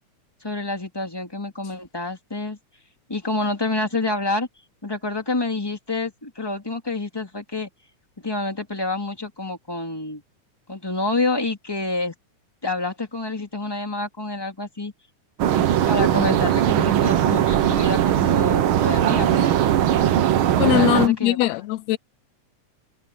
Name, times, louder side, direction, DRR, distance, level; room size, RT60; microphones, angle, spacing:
voice 1, 0.4-2.6 3.1-4.5 4.8-7.7 8.2-10.2 10.7-12.1 12.6-14.9 15.9-19.6 20.7-21.4, left 2 dB, 10° left, 2.2 m, -28 dB
sound 1, 15.4-21.1, right 11 dB, 70° right, 1.2 m, -19 dB
voice 2, 20.6-22.0, left 15 dB, 80° left, 1.6 m, -20 dB
omnidirectional pair, 3.5 m